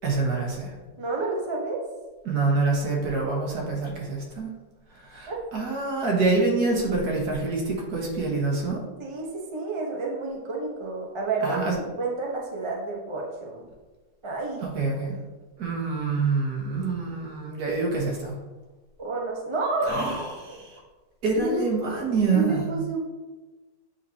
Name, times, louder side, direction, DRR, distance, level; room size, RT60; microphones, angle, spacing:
voice 1, 0.0-0.7 2.3-4.5 4.9-8.8 11.4-11.8 14.6-15.1 15.6-18.4 19.9-20.8 21.2-22.7, right 3 dB, 60° right, -2 dB, 1.7 m, -26 dB
voice 2, 1.0-1.8 5.3-5.4 9.0-11.6 11.8-13.7 14.2-14.6 19.0-20.0 21.4-21.6 22.3-23.0, right 3 dB, 30° right, -2 dB, 0.6 m, -30 dB
8.2 x 4.4 x 2.8 m, 1.2 s
omnidirectional pair, 2.0 m